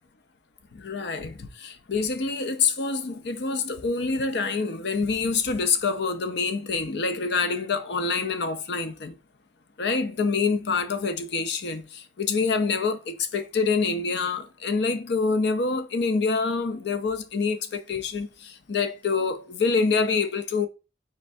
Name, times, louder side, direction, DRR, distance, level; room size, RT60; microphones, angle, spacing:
voice 1, 0.7-9.1 9.8-20.7, left 4 dB, 60° left, 0.5 m, -26 dB
4.4 x 3.1 x 2.5 m
head